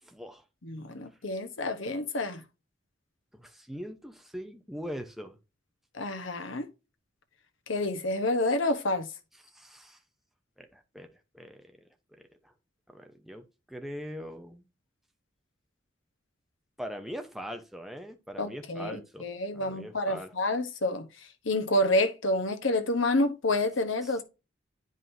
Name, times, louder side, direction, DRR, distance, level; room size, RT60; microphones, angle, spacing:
voice 1, 0.0-0.4 3.3-5.4 9.5-10.0 10.6-11.1 11.3-11.8 12.4-12.5 12.9-14.6 16.8-19.3 19.5-20.3 24.0-24.2, equal, ahead, 0.9 m, -41 dB
voice 2, 0.6-2.4 5.9-6.7 7.7-9.1 18.4-21.1 21.4-24.2, left 1 dB, 85° left, 1.2 m, -28 dB
9.6 x 5.2 x 2.7 m
head